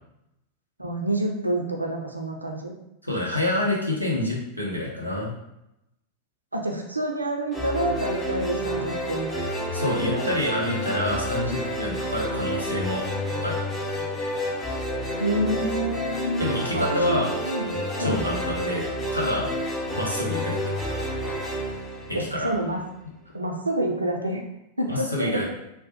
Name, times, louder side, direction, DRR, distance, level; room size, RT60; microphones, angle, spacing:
voice 1, 0.8-2.7 6.5-9.4 10.0-10.3 15.2-16.5 16.7-18.2 22.1-22.8 23.3-24.4 24.8-25.4, right 1 dB, 85° right, 2 dB, 0.4 m, -28 dB
voice 2, 3.0-5.3 9.7-13.1 13.4-13.6 16.4-17.3 18.0-18.8 19.1-19.5 20.0-20.7 22.1-22.5 24.9-25.5, left 1 dB, 85° left, -3 dB, 0.7 m, -27 dB
sound 1, 7.5-22.8, equal, 15° left, 0.7 m, -30 dB
3.3 x 2.1 x 2.7 m, 0.85 s
figure-of-eight pair, 90°, 0 cm